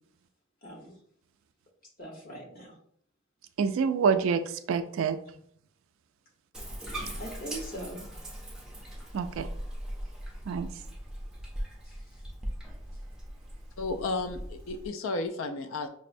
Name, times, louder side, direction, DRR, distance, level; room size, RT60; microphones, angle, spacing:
voice 1, 0.6-1.0 2.0-2.8 7.2-8.0 11.8-12.2, right 1 dB, 40° left, -2 dB, 1.0 m, -41 dB
voice 2, 3.6-5.2 9.1-9.5 10.5-10.7, right 6 dB, 75° right, 9 dB, 0.3 m, -27 dB
Bathtub (filling or washing), 6.5-14.9, right 1 dB, 5° right, 0.4 m, -40 dB
voice 3, 13.8-15.9, left 3 dB, 70° left, 7 dB, 0.3 m, -33 dB
5.2 x 2.0 x 2.5 m, 0.65 s
head